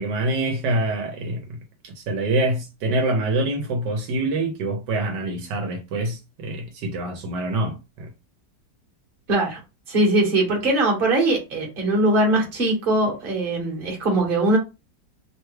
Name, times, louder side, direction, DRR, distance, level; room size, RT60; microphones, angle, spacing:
voice 1, 0.0-1.6 1.8-8.1, right 2 dB, 80° right, 1.3 m, -25 dB
voice 2, 9.3-9.6 9.9-14.6, right 2 dB, 35° right, 1.2 m, -21 dB
3.2 x 2.2 x 3.1 m
omnidirectional pair, 1.9 m